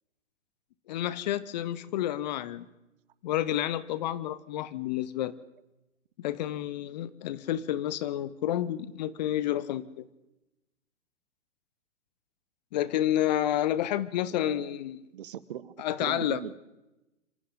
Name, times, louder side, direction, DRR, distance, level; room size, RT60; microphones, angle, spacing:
voice 1, 0.9-2.7 3.2-5.3 6.2-10.0 12.7-15.0 15.8-16.4, left 12 dB, 35° left, 16 dB, 1.0 m, -30 dB
voice 2, 14.3-14.7 15.1-15.7 16.0-16.5, right 10 dB, 45° right, 17 dB, 1.1 m, -39 dB
26.5 x 25.5 x 3.9 m, 0.94 s
figure-of-eight pair, 115°, 37 cm